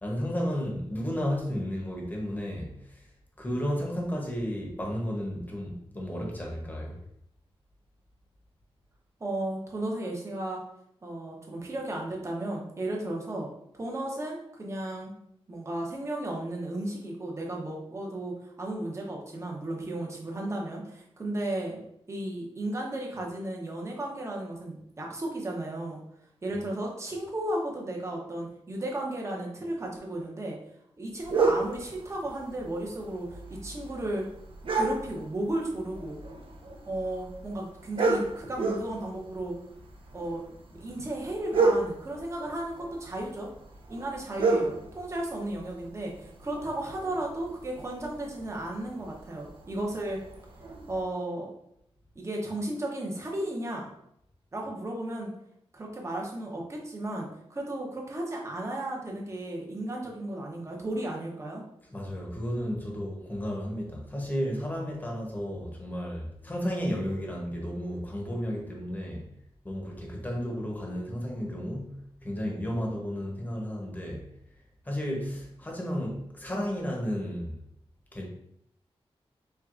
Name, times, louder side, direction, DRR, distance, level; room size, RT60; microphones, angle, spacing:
voice 1, 0.0-3.1 3.4-7.0 61.9-69.3 69.6-74.2 74.8-77.6 78.1-78.2, equal, 15° left, -1 dB, 0.9 m, -33 dB
voice 2, 9.2-10.6 11.0-13.5 13.7-15.1 15.5-21.8 22.1-26.0 26.4-30.6 31.0-34.2 34.7-36.2 36.9-39.5 40.1-40.4 40.8-43.5 43.9-50.2 50.9-51.5 52.2-53.9 54.5-55.3 55.7-61.6, right 1 dB, 25° right, -1 dB, 0.8 m, -34 dB
sound 1, 31.2-51.0, right 3 dB, 60° right, 0.6 m, -33 dB
4.6 x 3.4 x 2.5 m, 0.76 s
wide cardioid pair, 140°, 10 cm